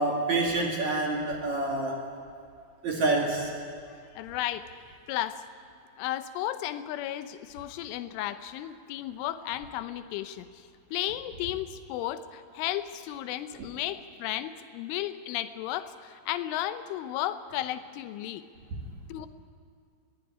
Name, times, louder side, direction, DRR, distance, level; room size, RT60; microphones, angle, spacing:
voice 1, 0.0-2.0 2.8-3.5 18.7-18.8, right 2 dB, 45° right, 0 dB, 2.8 m, -27 dB
voice 2, 4.2-4.7 5.1-5.5 6.0-18.4 19.1-19.3, left 13 dB, 85° left, 11 dB, 3.3 m, -34 dB
21.5 x 18.0 x 10.0 m, 2.2 s
omnidirectional pair, 5.5 m